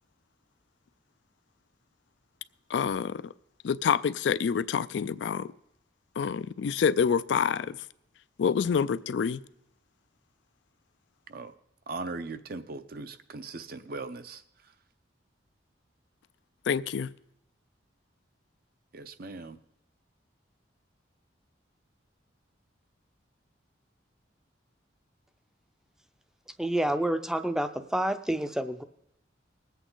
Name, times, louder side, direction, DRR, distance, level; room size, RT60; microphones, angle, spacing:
voice 1, 2.7-3.2 3.6-5.5 6.2-7.8 8.4-9.4 16.7-17.1, left 6 dB, 70° left, 0.3 m, -27 dB
voice 2, 11.9-14.4 18.9-19.6, right 3 dB, 50° right, 0.6 m, -39 dB
voice 3, 26.6-28.8, right 1 dB, 5° right, 0.5 m, -28 dB
20.0 x 8.2 x 3.9 m
head